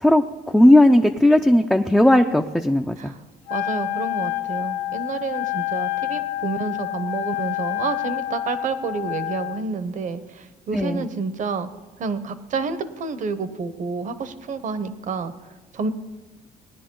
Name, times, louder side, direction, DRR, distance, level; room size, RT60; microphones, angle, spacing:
voice 1, 0.0-3.1 10.7-11.1, left 1 dB, 5° left, 3 dB, 0.5 m, -16 dB
Wind instrument woodwind instrument, 3.5-9.6, left 14 dB, 85° left, 1.1 m, -28 dB
voice 2, 3.5-11.7 12.0-15.3 15.7-15.9, right 4 dB, 50° right, 12 dB, 1.0 m, -29 dB
19.0 x 10.5 x 3.8 m, 1.2 s
cardioid pair, 110°, 17 cm